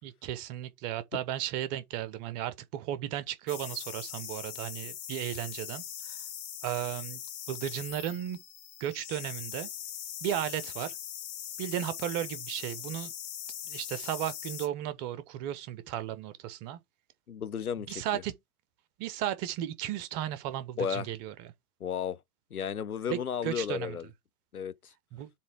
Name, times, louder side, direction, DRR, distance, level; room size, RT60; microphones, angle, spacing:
voice 1, 0.0-5.8 6.6-7.2 7.5-8.4 8.8-9.7 10.2-10.9 11.6-13.1 13.7-16.8 17.9-18.3 19.0-21.5 23.1-24.0 25.1-25.3, right 11 dB, 30° right, 1.0 m, -35 dB
sound 1, 3.5-14.7, left 10 dB, 30° left, 2.1 m, -41 dB
voice 2, 17.3-18.2 20.8-21.1 21.8-22.2 22.5-24.1 24.5-24.9, left 8 dB, 75° left, 0.9 m, -34 dB
7.3 x 3.4 x 4.7 m
figure-of-eight pair, 110°, 44 cm